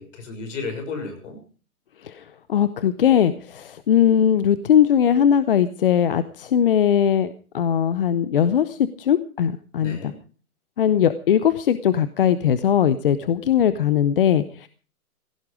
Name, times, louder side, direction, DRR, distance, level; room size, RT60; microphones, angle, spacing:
voice 1, 0.0-1.4 9.8-10.2, left 4 dB, 55° left, 6 dB, 6.3 m, -33 dB
voice 2, 2.0-10.1 10.8-14.7, left 9 dB, 40° left, 14 dB, 0.6 m, -20 dB
16.5 x 14.5 x 4.9 m, 0.38 s
hypercardioid pair, 165°, 44 cm